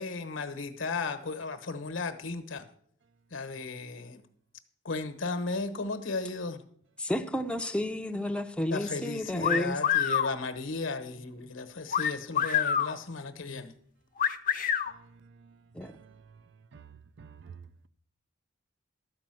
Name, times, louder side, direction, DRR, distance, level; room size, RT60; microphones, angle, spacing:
voice 1, 0.0-2.6 3.3-4.2 4.8-6.6 8.7-13.7, left 3 dB, 70° left, 1.0 m, -35 dB
voice 2, 7.0-9.8 15.7-15.9, left 1 dB, 5° left, 0.5 m, -31 dB
sound 1, 9.4-10.3 11.9-12.9 14.2-14.9, left 8 dB, 45° left, 0.7 m, -26 dB
voice 3, 14.9-16.2 16.7-17.9, right 6 dB, 60° right, 0.4 m, -52 dB
12.5 x 5.0 x 7.6 m
head